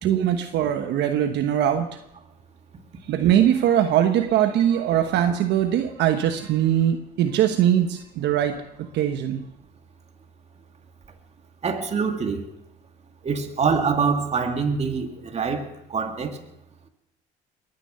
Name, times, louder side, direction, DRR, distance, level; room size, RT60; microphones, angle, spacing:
voice 1, 0.0-1.9 3.1-9.4, right 10 dB, 70° right, 7 dB, 1.1 m, -21 dB
voice 2, 11.6-12.4 13.2-16.4, right 5 dB, 35° right, 5 dB, 2.3 m, -25 dB
21.5 x 9.9 x 6.7 m, 0.83 s
supercardioid pair, 90°, 19 cm